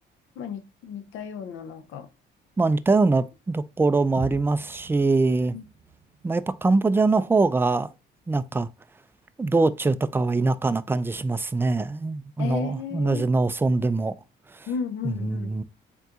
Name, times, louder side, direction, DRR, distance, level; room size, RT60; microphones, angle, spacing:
voice 1, 0.4-2.1 5.5-5.6 12.4-13.2 14.7-15.6, left 6 dB, 85° left, 0.6 m, -33 dB
voice 2, 2.6-5.6 6.2-7.9 8.3-8.7 9.4-14.2 14.5-14.7 15.0-15.6, right 3 dB, 10° right, 0.3 m, -23 dB
sound 1, 4.2-8.1, right 7 dB, 60° right, 0.9 m, -44 dB
4.5 x 3.8 x 2.3 m
cardioid pair, 90°, 20 cm